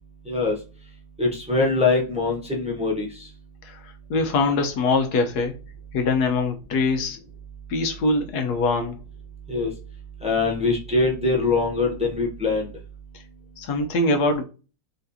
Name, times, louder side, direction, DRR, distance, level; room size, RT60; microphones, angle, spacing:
voice 1, 0.3-0.6 1.2-3.3 9.5-9.7 10.2-12.7, left 3 dB, 5° right, 0.8 m, -23 dB
voice 2, 3.6-5.5 5.9-7.2 7.7-9.0 13.6-14.4, left 3 dB, 80° left, 1.4 m, -23 dB
4.1 x 3.3 x 2.7 m
omnidirectional pair, 1.7 m